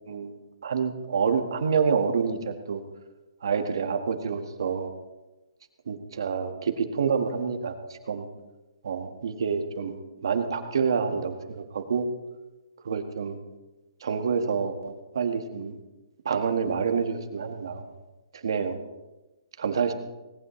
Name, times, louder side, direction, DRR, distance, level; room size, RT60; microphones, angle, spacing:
voice 1, 0.1-0.4 0.6-2.8 3.4-4.9 5.9-8.2 8.8-12.1 12.8-13.4 14.0-15.8 16.2-17.8 18.4-18.8 19.6-19.9, right 6 dB, 55° right, 6 dB, 1.7 m, -28 dB
18.5 x 18.5 x 3.2 m, 1.1 s
hypercardioid pair, 175°, 3 cm